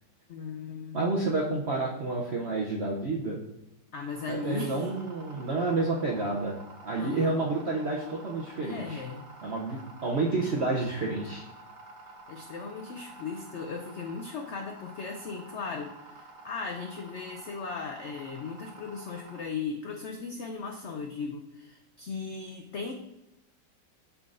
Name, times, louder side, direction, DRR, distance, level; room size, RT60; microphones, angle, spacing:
voice 1, 0.3-1.2 3.9-4.9 7.0-7.5 8.6-9.3 12.3-22.9, left 4 dB, 85° left, 3 dB, 0.6 m, -37 dB
voice 2, 0.9-3.4 4.3-6.6 6.8-9.0 9.4-11.4, right 3 dB, 55° right, -2 dB, 0.7 m, -29 dB
sound 1, 4.1-19.4, right 2 dB, 75° right, 1.5 m, -50 dB
11.0 x 3.7 x 2.5 m, 0.92 s
omnidirectional pair, 1.8 m